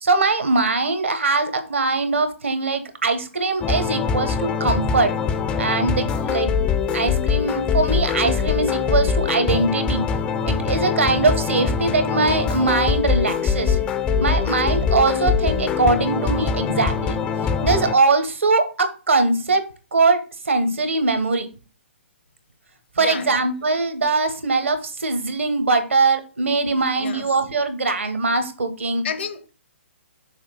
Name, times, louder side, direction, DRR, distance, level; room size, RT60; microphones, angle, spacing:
voice 1, 0.0-5.1 5.6-6.5 6.9-10.0 10.5-13.8 14.2-17.2 17.6-19.6 19.9-20.2 20.5-21.5 23.0-29.0, right 3 dB, 80° right, 1.2 m, -21 dB
sound 1, 3.6-17.9, left 6 dB, 15° left, 0.4 m, -23 dB
voice 2, 23.0-23.4 27.0-27.3 29.0-29.5, left 7 dB, 60° left, 0.8 m, -31 dB
6.5 x 2.9 x 5.3 m
figure-of-eight pair, 135°, 7 cm